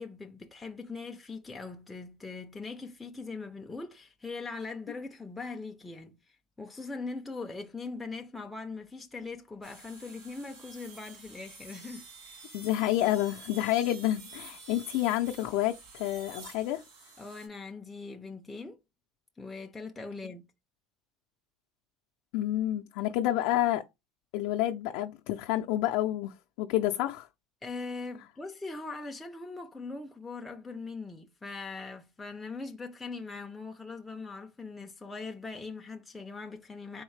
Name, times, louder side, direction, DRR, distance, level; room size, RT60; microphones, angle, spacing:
voice 1, 0.0-12.4 17.2-18.8 19.4-20.4 27.6-37.0, left 3 dB, 5° left, 0.4 m, -41 dB
sound 1, 9.6-17.5, right 4 dB, 60° right, 1.8 m, -50 dB
voice 2, 12.5-16.8 22.3-23.8 24.3-27.3, left 14 dB, 70° left, 0.4 m, -29 dB
4.0 x 3.5 x 3.1 m
cardioid pair, 165°, 0 cm